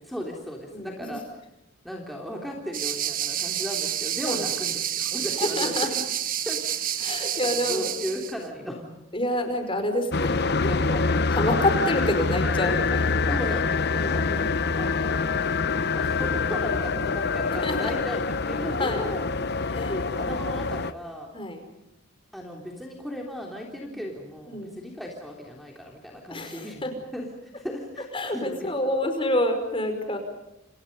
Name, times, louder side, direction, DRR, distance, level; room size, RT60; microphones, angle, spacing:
voice 1, 0.0-1.2 1.8-5.9 6.5-8.9 13.3-14.2 14.8-15.3 16.0-19.3 20.2-21.3 22.3-26.8 27.1-27.3 27.6-28.7, equal, ahead, -1 dB, 3.4 m, -36 dB
sound 1, 2.7-8.3, right 11 dB, 40° right, 1.4 m, -29 dB
voice 2, 5.4-5.9 7.0-7.9 9.1-13.4 14.0-14.9 17.6-17.9 18.8-19.0 19.7-20.0 21.3-21.6 23.9-24.0 24.5-24.8 26.3-26.9 28.1-30.2, left 1 dB, 25° left, 6 dB, 5.2 m, -28 dB
sound 2, 10.1-20.9, left 4 dB, 50° left, 0.9 m, -25 dB
29.5 x 29.5 x 5.4 m, 0.90 s
head